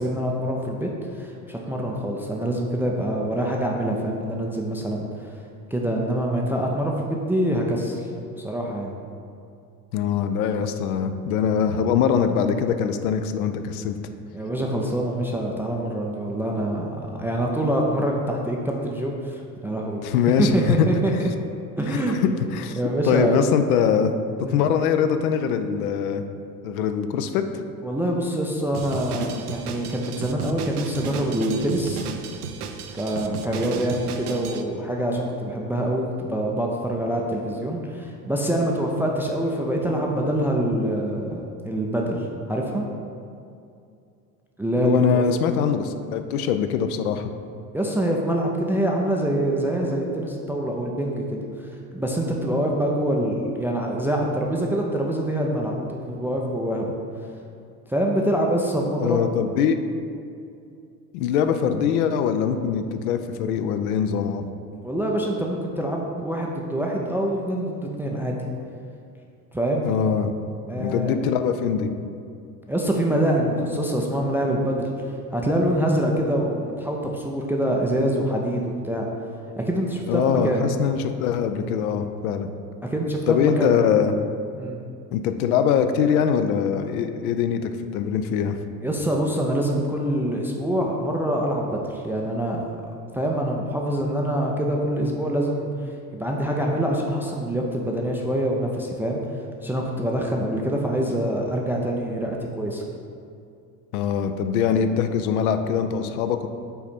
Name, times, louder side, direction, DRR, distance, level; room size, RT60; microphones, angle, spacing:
voice 1, 0.0-5.3 5.7-8.1 8.4-8.9 14.3-20.0 20.4-21.3 21.8-22.2 22.8-23.4 24.4-24.6 27.8-32.0 32.9-42.8 44.6-45.2 47.7-56.9 57.9-59.5 64.8-68.4 69.5-69.9 70.7-71.1 72.7-74.9 75.3-79.1 79.6-80.7 82.8-83.7 84.6-84.8 88.8-92.7 93.1-95.7 96.1-99.2 99.6-102.8, right 1 dB, 5° right, 0 dB, 0.3 m, -25 dB
voice 2, 9.9-14.0 20.0-20.9 21.9-22.8 23.0-24.1 24.5-26.2 26.6-27.4 44.8-47.3 59.0-59.8 61.1-64.4 69.8-70.3 70.8-71.9 80.1-82.5 83.3-84.1 85.1-88.6 103.9-106.5, left 7 dB, 65° left, 8 dB, 0.6 m, -23 dB
Drum kit, 28.7-34.6, right 5 dB, 70° right, 0.6 m, -33 dB
5.7 x 4.1 x 4.3 m, 2.5 s
figure-of-eight pair, 65°, 47 cm